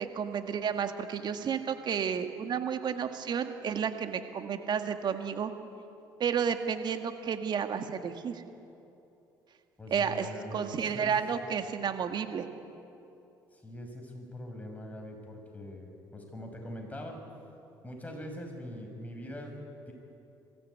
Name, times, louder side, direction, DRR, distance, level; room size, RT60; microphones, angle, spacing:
voice 1, 0.0-5.5 6.2-8.4 9.9-12.5, right 7 dB, 55° right, 7 dB, 1.9 m, -31 dB
voice 2, 9.8-11.1 13.5-17.2 17.8-19.6 19.9-20.0, left 1 dB, 15° left, 2 dB, 6.1 m, -42 dB
21.5 x 15.5 x 9.5 m, 2.8 s
supercardioid pair, 65°, 9 cm